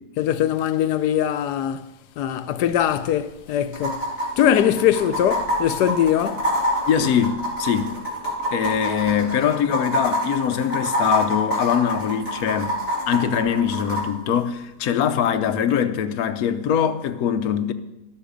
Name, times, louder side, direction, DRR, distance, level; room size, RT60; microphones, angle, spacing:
voice 1, 0.2-1.9 2.2-4.1 4.4-6.5, left 10 dB, 90° left, 1.2 m, -21 dB
sound 1, 2.7-2.8 3.0-3.1 3.7-14.0 15.7-15.8, equal, 55° left, 3.9 m, -26 dB
voice 2, 6.9-8.0 8.5-12.8 13.1-17.7, left 8 dB, 70° left, 1.2 m, -22 dB
12.0 x 11.5 x 5.2 m
omnidirectional pair, 1.7 m